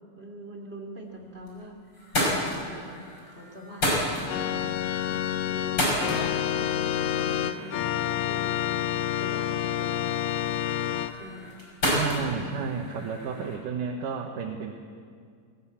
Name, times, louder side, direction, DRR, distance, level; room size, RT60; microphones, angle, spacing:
voice 1, 0.2-3.0 3.3-4.8 5.1-5.2 5.5-11.5 12.1-12.8 13.4-13.6, equal, 20° right, 0 dB, 2.8 m, -43 dB
sound 1, 1.1-1.6 1.9-13.6, left 1 dB, 35° left, 6.2 m, -33 dB
Organ, 4.3-11.1, left 11 dB, 75° left, 1.5 m, -28 dB
voice 2, 11.9-14.7, right 6 dB, 85° right, 2 dB, 2.8 m, -32 dB
20.0 x 18.5 x 8.5 m, 2.1 s
omnidirectional pair, 3.7 m